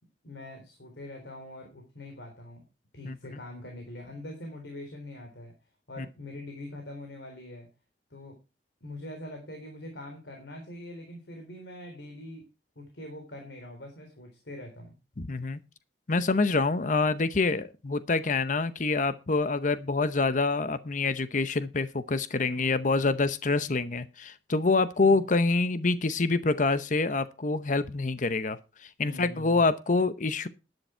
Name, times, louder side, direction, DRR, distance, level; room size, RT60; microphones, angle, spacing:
voice 1, 0.2-2.6 2.9-5.5 5.9-7.7 8.1-8.4 8.8-12.5 12.8-15.0 25.0-25.3 29.0-29.7, left 1 dB, 80° left, 3 dB, 3.8 m, -43 dB
voice 2, 3.0-3.4 6.0-6.1 15.2-15.6 16.1-30.5, left 3 dB, 45° left, 13 dB, 0.8 m, -26 dB
11.5 x 11.0 x 4.5 m, 0.29 s
head